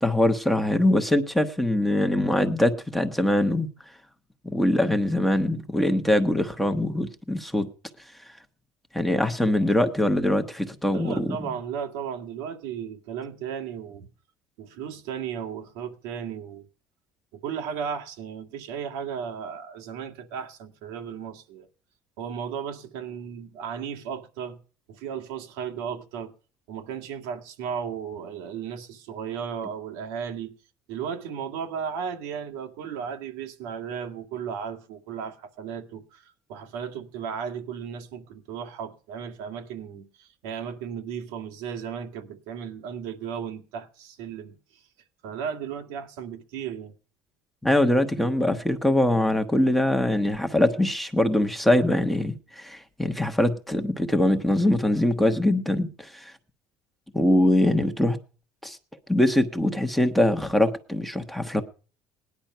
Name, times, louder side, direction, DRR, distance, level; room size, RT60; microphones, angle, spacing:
voice 1, 0.0-3.7 4.4-7.7 8.9-11.4 47.6-56.3 57.1-58.2 58.6-58.8 59.1-61.6, left 1 dB, ahead, 1.0 m, -23 dB
voice 2, 10.9-14.1 14.6-16.6 17.4-21.7 22.2-24.6 24.9-26.3 26.7-30.5 30.9-36.2 36.5-44.8 45.2-46.9, right 7 dB, 85° right, 2.1 m, -35 dB
18.5 x 10.5 x 5.6 m
cardioid pair, 165°, 7 cm